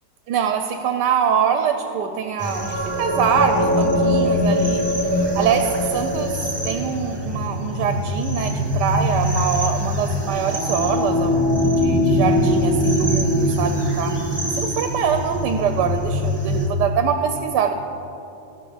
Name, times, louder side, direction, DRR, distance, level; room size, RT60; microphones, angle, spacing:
voice 1, 0.3-14.1 14.5-17.7, right 7 dB, 75° right, 6 dB, 1.1 m, -24 dB
sound 1, 2.4-16.7, left 1 dB, 20° right, 0.7 m, -22 dB
13.0 x 6.8 x 5.1 m, 2.9 s
omnidirectional pair, 2.0 m